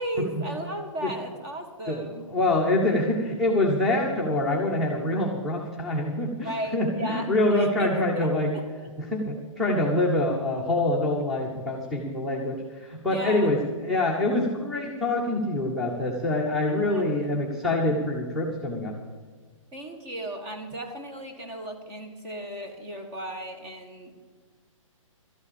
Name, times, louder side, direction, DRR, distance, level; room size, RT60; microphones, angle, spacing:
voice 1, 0.0-2.3 6.4-8.3 8.5-8.9 13.1-13.5 16.9-17.3 19.7-24.2, right 1 dB, 20° right, 5 dB, 1.8 m, -35 dB
voice 2, 2.3-8.5 9.0-13.6 13.8-18.9, left 1 dB, ahead, -3 dB, 1.1 m, -25 dB
13.0 x 9.6 x 7.0 m, 1.5 s
hypercardioid pair, 160°, 17 cm